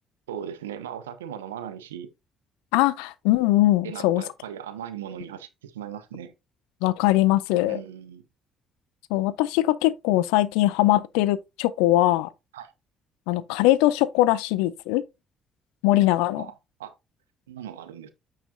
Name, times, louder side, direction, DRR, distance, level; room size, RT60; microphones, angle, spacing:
voice 1, 0.3-2.1 3.8-6.3 7.7-8.2 12.5-12.7 16.4-16.5 16.8-16.9 17.5-18.1, right 9 dB, 85° right, 0.7 m, -38 dB
voice 2, 2.7-4.2 6.8-7.8 9.1-12.3 13.3-15.0 15.8-16.5, left 16 dB, 75° left, 0.4 m, -21 dB
8.7 x 4.9 x 2.7 m
hypercardioid pair, 50°, 0 cm